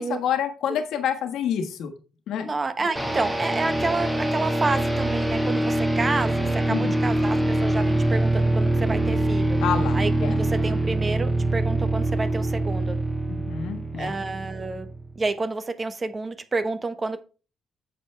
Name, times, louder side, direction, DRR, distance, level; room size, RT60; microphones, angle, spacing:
voice 1, 0.0-1.9 2.3-2.5 6.7-7.0 9.6-10.4 13.3-14.2, left 8 dB, 80° left, 1.4 m, -28 dB
voice 2, 2.4-9.6 9.9-13.0 13.9-14.9 15.2-17.2, right 3 dB, 30° right, 1.0 m, -29 dB
sound 1, 3.0-15.2, right 2 dB, 10° right, 1.7 m, -24 dB
8.9 x 6.6 x 3.4 m
cardioid pair, 90°, 0 cm